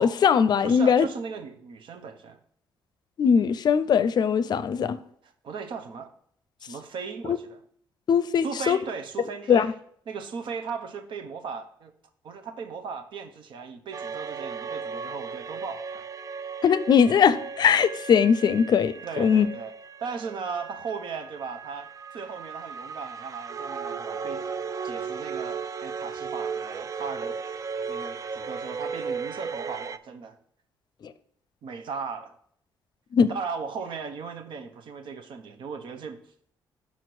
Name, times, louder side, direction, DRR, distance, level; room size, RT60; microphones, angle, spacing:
voice 1, 0.0-1.1 3.2-5.0 7.3-7.4 8.1-8.8 9.5-9.7 16.6-19.5 33.1-33.3, left 7 dB, 55° left, 0.5 m, -20 dB
voice 2, 0.6-2.4 5.2-6.1 6.6-7.6 8.4-9.7 10.1-11.9 12.2-16.0 19.0-19.7 20.0-24.5 24.8-27.5 27.9-30.4 31.6-32.3 33.3-36.2, right 5 dB, 70° right, 0.9 m, -37 dB
sound 1, 13.9-30.0, right 5 dB, 40° right, 0.4 m, -36 dB
5.7 x 4.5 x 6.0 m
cardioid pair, 80°, 9 cm